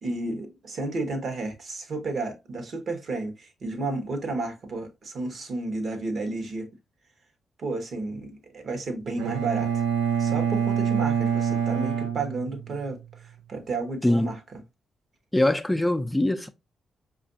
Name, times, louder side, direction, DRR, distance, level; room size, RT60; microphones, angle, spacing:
voice 1, 0.0-6.7 7.6-9.8 10.2-14.4, right 3 dB, 60° right, 1.0 m, -32 dB
Bowed string instrument, 9.2-13.0, right 8 dB, 90° right, 0.4 m, -26 dB
voice 2, 14.0-14.4 15.3-16.5, left 1 dB, 15° left, 0.5 m, -23 dB
5.0 x 2.4 x 2.5 m
hypercardioid pair, 45°, 0 cm